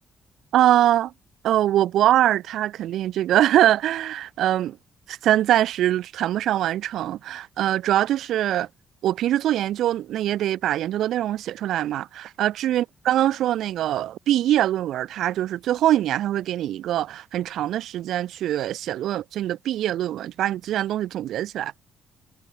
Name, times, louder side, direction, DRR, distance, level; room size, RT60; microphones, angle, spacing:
voice 1, 0.5-1.1 1.4-4.8 5.1-8.7 9.0-21.7, right 12 dB, 80° right, 2.2 m, -23 dB
cardioid pair, 145°, 0 cm